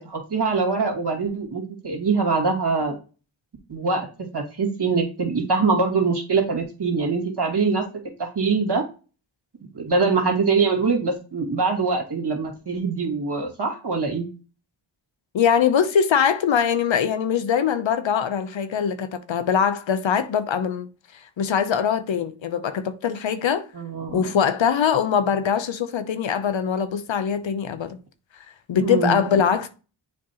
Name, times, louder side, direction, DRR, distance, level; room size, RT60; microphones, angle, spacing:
voice 1, 0.0-3.0 3.7-4.1 4.3-7.9 8.2-8.8 9.7-14.2 23.7-24.3 28.8-29.4, right 4 dB, 55° right, 2.2 m, -23 dB
voice 2, 15.3-20.9 21.4-23.7 24.1-28.0 28.7-29.7, left 7 dB, 70° left, 0.8 m, -22 dB
7.4 x 4.4 x 2.9 m
cardioid pair, 50°, 48 cm